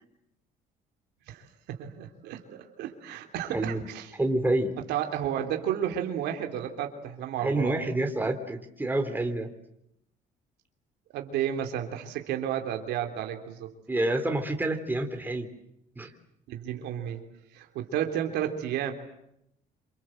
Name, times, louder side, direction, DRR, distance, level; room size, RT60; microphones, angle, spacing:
voice 1, 1.3-4.1 4.9-7.8 11.1-13.7 16.5-17.2 17.5-18.9, right 10 dB, 85° right, 4 dB, 3.5 m, -32 dB
voice 2, 4.2-4.7 7.4-9.5 13.9-15.5 16.0-16.1, right 2 dB, 10° right, 5 dB, 3.5 m, -28 dB
28.0 x 26.5 x 7.8 m, 0.78 s
cardioid pair, 110°, 17 cm